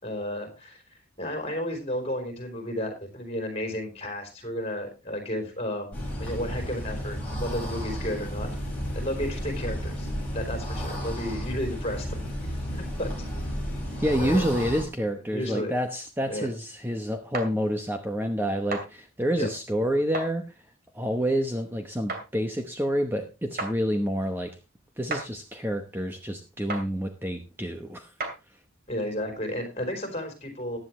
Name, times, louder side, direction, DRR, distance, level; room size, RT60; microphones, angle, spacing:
voice 1, 0.0-0.8 1.2-8.5 8.9-10.1 10.3-13.3 14.2-14.5 15.2-15.7 16.3-16.5 19.4-19.5 28.9-30.8, left 1 dB, 30° left, 5 dB, 3.8 m, -33 dB
sound 1, 5.9-14.8, equal, 5° left, 6.1 m, -32 dB
voice 2, 14.0-20.5 20.9-24.5 25.0-28.1, equal, 10° right, 5 dB, 0.9 m, -28 dB
sound 2, 17.3-17.5 18.7-18.9 20.1-20.3 22.1-22.3 23.6-23.8 25.1-25.3 26.7-26.9 28.2-28.4, right 3 dB, 45° right, 2.5 m, -31 dB
15.0 x 10.0 x 3.1 m, 0.27 s
head